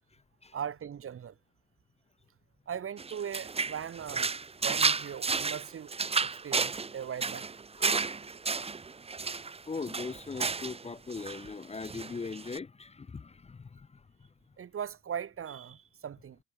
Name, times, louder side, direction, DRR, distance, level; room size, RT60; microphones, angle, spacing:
voice 1, 0.5-1.4 2.7-4.3 4.6-5.9 6.2-7.5 14.6-16.4, right 8 dB, 45° right, 1.3 m, -39 dB
sound 1, 3.0-10.8 11.1-11.5 11.8-12.6, right 4 dB, 20° right, 0.7 m, -32 dB
voice 2, 7.8-8.2 9.7-13.9, left 4 dB, 20° left, 0.6 m, -40 dB
cardioid pair, 90°, 30 cm